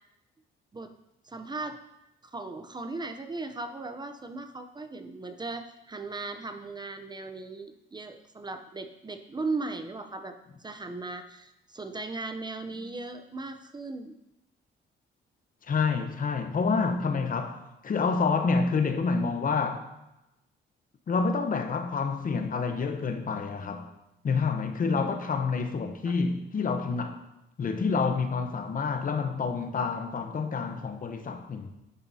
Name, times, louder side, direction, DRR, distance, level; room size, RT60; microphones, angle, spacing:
voice 1, 1.2-1.8 2.3-14.2 24.8-25.2 26.1-26.2, right 3 dB, 20° right, 0.7 m, -37 dB
voice 2, 15.7-19.8 21.1-23.9 24.2-27.2 27.6-31.7, left 4 dB, 45° left, 0.9 m, -28 dB
10.5 x 7.1 x 2.8 m
cardioid pair, 90°, 20 cm